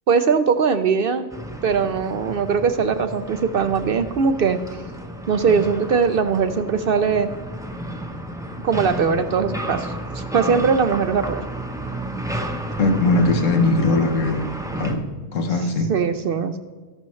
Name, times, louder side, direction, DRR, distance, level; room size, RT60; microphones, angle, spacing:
voice 1, 0.1-1.3 1.6-4.6 5.3-7.3 8.6-11.4 15.9-16.6, right 5 dB, 60° right, 0.6 m, -20 dB
sound 1, 1.3-14.9, right 1 dB, 5° right, 0.6 m, -32 dB
voice 2, 12.8-14.5 14.8-15.1 15.3-15.9, left 2 dB, 80° left, 1.4 m, -20 dB
13.5 x 11.5 x 3.1 m
omnidirectional pair, 1.3 m